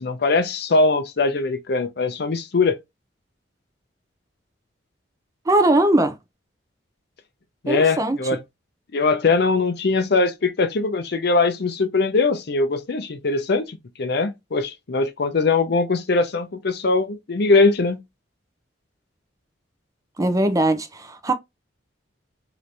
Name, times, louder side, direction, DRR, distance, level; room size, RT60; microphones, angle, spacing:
voice 1, 0.0-2.8 7.6-8.4 8.9-18.0, left 3 dB, 55° left, 0.6 m, -21 dB
voice 2, 5.5-6.2 7.7-8.2 20.2-21.3, right 1 dB, 15° right, 0.4 m, -20 dB
3.0 x 2.6 x 3.2 m
head